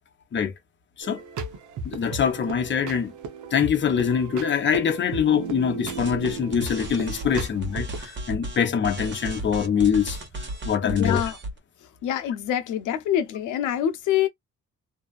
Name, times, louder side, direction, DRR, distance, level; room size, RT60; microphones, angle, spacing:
sound 1, 1.0-8.0, right 4 dB, 75° right, 0.8 m, -36 dB
voice 1, 1.8-3.1 3.5-10.2 10.6-11.2, left 7 dB, 40° left, 0.8 m, -24 dB
sound 2, 5.9-8.6 8.8-11.6, right 1 dB, 40° right, 1.2 m, -35 dB
voice 2, 10.8-11.4 11.8-14.3, left 10 dB, 85° left, 0.6 m, -26 dB
2.6 x 2.4 x 2.3 m
cardioid pair, 90°, 30 cm